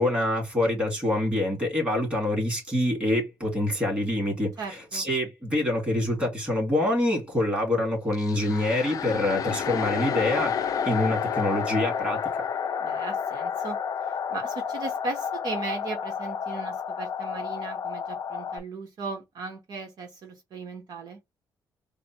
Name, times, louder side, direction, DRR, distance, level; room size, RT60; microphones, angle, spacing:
voice 1, 0.0-10.5 10.8-12.2, left 1 dB, 15° right, 2.4 m, -26 dB
voice 2, 4.6-5.1 12.8-13.8 14.0-21.2, right 4 dB, 60° right, 1.0 m, -37 dB
sound 1, 8.1-18.6, left 7 dB, 50° left, 0.4 m, -30 dB
4.1 x 2.1 x 4.3 m
cardioid pair, 155°, 8 cm